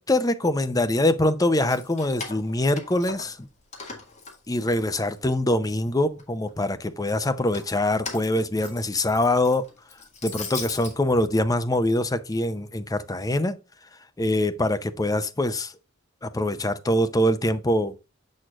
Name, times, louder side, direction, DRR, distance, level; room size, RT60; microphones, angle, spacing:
voice 1, 0.0-3.5 4.5-9.7 10.2-13.6 14.2-15.7 16.2-17.9, left 1 dB, 15° left, 0.6 m, -24 dB
Keys jangling, 1.5-3.4 3.7-5.3 5.8-6.5 7.3-10.9, left 4 dB, 35° left, 2.1 m, -39 dB
7.5 x 6.4 x 2.4 m
head